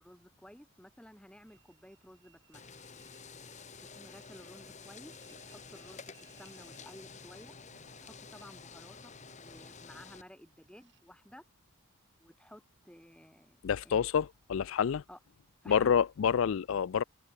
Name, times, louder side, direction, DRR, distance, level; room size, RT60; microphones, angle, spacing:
voice 1, 0.0-2.6 3.9-7.6 7.8-9.1 9.4-11.4 12.2-13.6 13.8-14.1 15.1-15.2 15.6-16.0, equal, 5° left, 2.8 m, -54 dB
Train, 1.5-13.9, right 6 dB, 55° right, 7.9 m, -67 dB
sound 1, 2.5-10.2, left 5 dB, 30° left, 1.7 m, -50 dB
voice 2, 13.6-15.0 15.7-17.0, left 7 dB, 65° left, 0.4 m, -28 dB
head